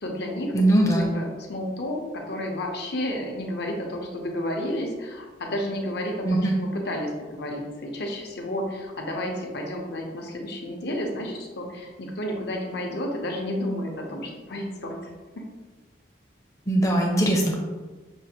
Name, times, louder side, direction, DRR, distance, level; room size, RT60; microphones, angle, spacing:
voice 1, 0.0-0.5 0.9-15.4, left 1 dB, 55° left, 1 dB, 0.7 m, -31 dB
voice 2, 0.5-1.1 6.2-6.5 16.7-17.5, right 1 dB, 15° left, 0 dB, 0.6 m, -20 dB
6.3 x 2.5 x 2.8 m, 1.3 s
head